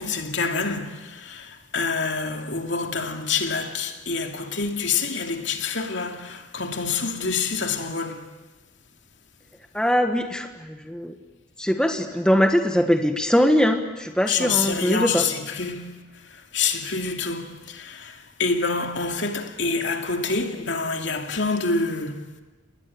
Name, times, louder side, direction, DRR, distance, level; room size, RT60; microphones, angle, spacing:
voice 1, 0.0-8.3 14.3-22.3, left 4 dB, 70° left, 2.6 m, -27 dB
voice 2, 9.7-11.1 11.6-15.2, equal, 5° left, 1.6 m, -21 dB
29.5 x 20.5 x 8.7 m
head